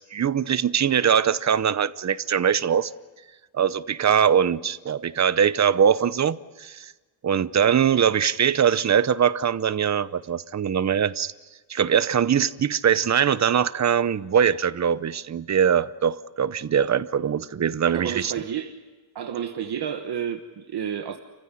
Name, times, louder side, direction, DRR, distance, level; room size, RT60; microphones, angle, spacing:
voice 1, 0.0-2.9 3.5-6.9 7.2-11.3 11.7-18.3, right 8 dB, 35° right, 0.8 m, -22 dB
voice 2, 17.9-18.8 19.1-21.2, right 8 dB, 55° right, 1.4 m, -30 dB
29.5 x 15.5 x 10.0 m
wide cardioid pair, 165°, 47 cm